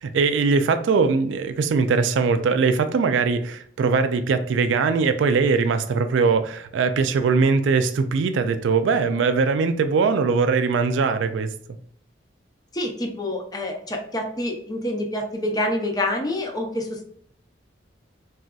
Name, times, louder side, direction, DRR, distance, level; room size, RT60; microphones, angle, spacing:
voice 1, 0.0-11.5, right 4 dB, 80° right, 10 dB, 0.3 m, -21 dB
voice 2, 12.7-17.0, left 1 dB, 20° left, 2 dB, 0.6 m, -27 dB
3.9 x 2.4 x 2.2 m, 0.63 s
head